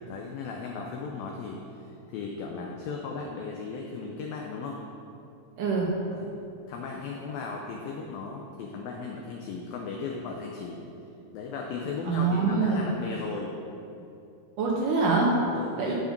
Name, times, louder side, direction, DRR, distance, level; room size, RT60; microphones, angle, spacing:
voice 1, 0.1-4.8 6.1-6.3 6.7-10.8 11.3-13.6 15.5-15.9, left 4 dB, 90° left, 0 dB, 2.0 m, -36 dB
voice 2, 5.6-5.9 12.1-12.9 14.6-15.3 15.8-15.9, right 4 dB, 90° right, -3 dB, 1.8 m, -25 dB
12.0 x 5.0 x 5.2 m, 2.7 s
omnidirectional pair, 5.0 m